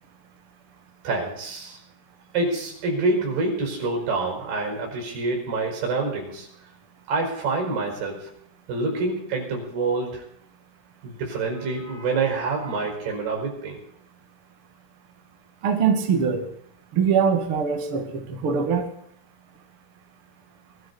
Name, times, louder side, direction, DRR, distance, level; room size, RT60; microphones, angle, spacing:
voice 1, 1.0-1.8 2.3-6.5 7.1-8.3 8.7-10.3 11.0-13.8, right 3 dB, 50° right, 1 dB, 6.8 m, -27 dB
voice 2, 15.6-16.4 16.9-18.8, right 6 dB, 70° right, 4 dB, 1.3 m, -22 dB
22.5 x 13.0 x 4.2 m, 0.67 s
omnidirectional pair, 6.0 m